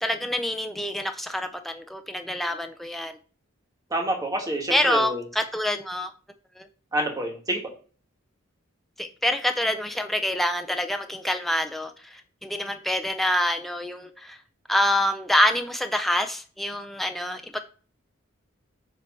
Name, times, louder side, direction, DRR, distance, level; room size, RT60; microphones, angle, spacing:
voice 1, 0.0-3.2 4.7-6.1 6.6-6.7 9.0-14.4 14.7-17.6, left 1 dB, ahead, 0.5 m, -26 dB
voice 2, 3.9-5.2 6.9-7.6, right 1 dB, 15° right, 1.4 m, -27 dB
7.4 x 3.0 x 5.2 m
head